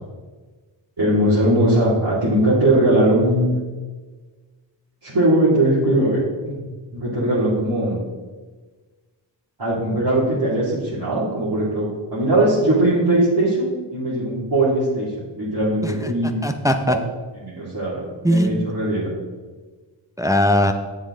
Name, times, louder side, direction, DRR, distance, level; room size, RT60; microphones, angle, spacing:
voice 1, 1.0-3.5 5.0-6.2 6.4-6.5 6.9-8.0 9.6-16.4 17.4-19.1, right 1 dB, 55° right, -10 dB, 2.6 m, -20 dB
voice 2, 16.4-17.0 18.2-18.7 20.2-20.7, equal, 5° right, 7 dB, 0.5 m, -19 dB
7.4 x 7.1 x 3.7 m, 1.4 s
cardioid pair, 40°, 48 cm